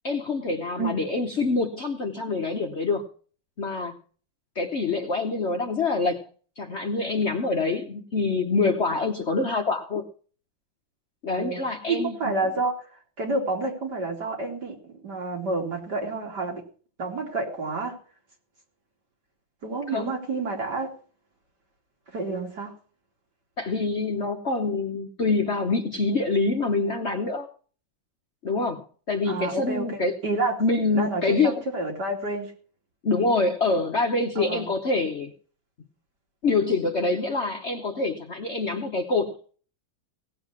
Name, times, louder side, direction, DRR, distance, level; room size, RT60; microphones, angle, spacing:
voice 1, 0.0-3.1 3.6-4.0 4.5-6.3 6.6-10.0 11.2-12.2 19.9-20.1 23.6-27.5 28.4-30.2 30.6-31.6 33.0-35.3 36.4-39.6, left 3 dB, 45° left, 3 dB, 1.1 m, -26 dB
voice 2, 11.4-12.8 13.2-16.6 17.0-18.0 19.6-20.9 22.1-22.7 29.3-29.9 30.2-30.5 30.9-32.5 34.4-34.7, right 3 dB, 60° right, 1 dB, 3.6 m, -29 dB
17.5 x 7.9 x 6.1 m, 0.42 s
omnidirectional pair, 2.1 m